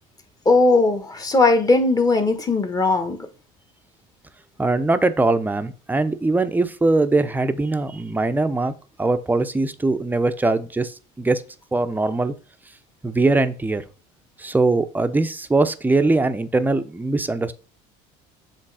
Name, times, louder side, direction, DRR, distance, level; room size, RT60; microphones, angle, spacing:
voice 1, 0.4-3.3, left 3 dB, 20° left, 1.4 m, -18 dB
voice 2, 4.6-8.7 9.0-11.4 11.7-12.3 13.0-13.8 14.4-17.5, right 2 dB, 10° right, 0.7 m, -21 dB
7.4 x 3.3 x 4.8 m
supercardioid pair, 100°, 17 cm